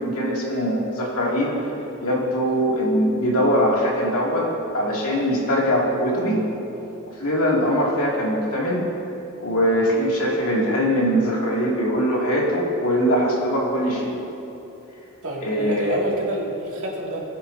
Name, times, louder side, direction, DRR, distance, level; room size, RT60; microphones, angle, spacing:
voice 1, 0.0-1.5 2.0-4.5 4.7-6.4 7.2-8.8 9.4-14.1 15.4-16.0, equal, 75° left, -4 dB, 2.6 m, -22 dB
voice 2, 15.2-17.2, right 1 dB, 65° right, -4 dB, 2.5 m, -28 dB
21.0 x 9.4 x 2.8 m, 3.0 s
head